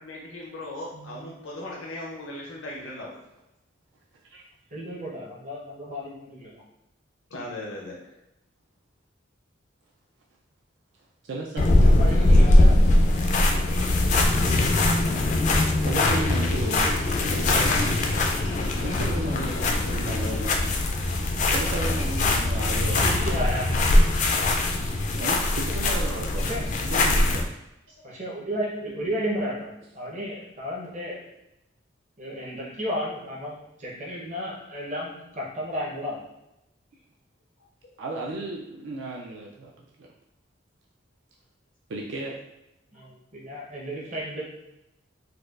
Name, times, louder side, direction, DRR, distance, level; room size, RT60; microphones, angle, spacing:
voice 1, 0.0-3.1 7.3-8.1 18.4-18.5 32.4-32.5 42.9-43.1, left 1 dB, 90° left, -3 dB, 0.6 m, -38 dB
voice 2, 0.9-1.3 4.3-4.4 11.2-11.6 15.8-16.9 17.3-18.0 18.8-20.8 21.5-23.3 24.7-24.9 25.2-26.5 26.8-27.4 27.9-28.0 38.0-40.1 41.9-42.4, right 2 dB, 70° right, -2 dB, 0.4 m, -34 dB
voice 3, 4.7-6.6 11.8-12.8 23.0-24.0 26.4-26.7 28.0-31.3 32.2-36.2 42.9-44.4, equal, 40° right, -4 dB, 0.8 m, -33 dB
sound 1, 11.6-27.4, left 2 dB, 40° left, 0.3 m, -21 dB
4.1 x 2.3 x 2.4 m, 0.90 s
head